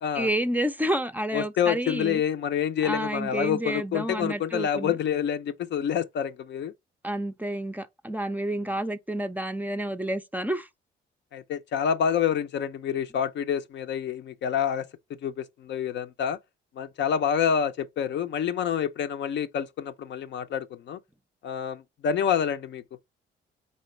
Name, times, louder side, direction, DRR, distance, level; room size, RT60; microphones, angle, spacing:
voice 1, 0.1-2.2 2.8-5.0 7.0-10.7, right 1 dB, 10° right, 0.5 m, -29 dB
voice 2, 1.3-6.7 11.3-14.9 15.2-16.4 16.8-21.0 21.4-22.8, left 8 dB, 65° left, 0.6 m, -27 dB
4.2 x 3.6 x 3.2 m
cardioid pair, 90°, 20 cm